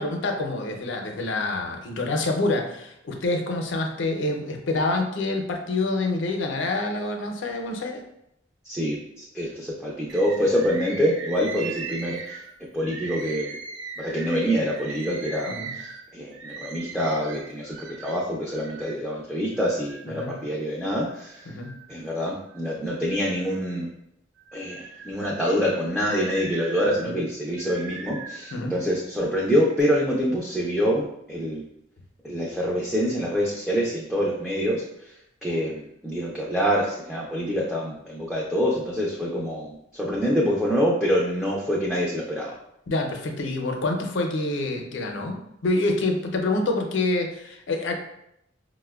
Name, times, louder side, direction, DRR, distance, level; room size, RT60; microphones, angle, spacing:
voice 1, 0.0-8.0 15.5-15.7 20.1-20.4 21.5-21.8 27.0-27.2 28.5-28.7 42.9-47.9, left 2 dB, 70° left, 3 dB, 0.5 m, -27 dB
voice 2, 8.6-12.4 12.7-13.6 14.0-21.5 21.9-23.9 24.5-31.6 32.2-35.1 35.4-42.5, equal, ahead, -4 dB, 0.4 m, -26 dB
Bird, 10.1-19.0 19.5-20.5 21.1-22.1 22.5-23.9 24.4-28.7 29.4-29.8, right 4 dB, 70° right, 0.4 m, -40 dB
4.9 x 2.1 x 2.3 m, 0.78 s
head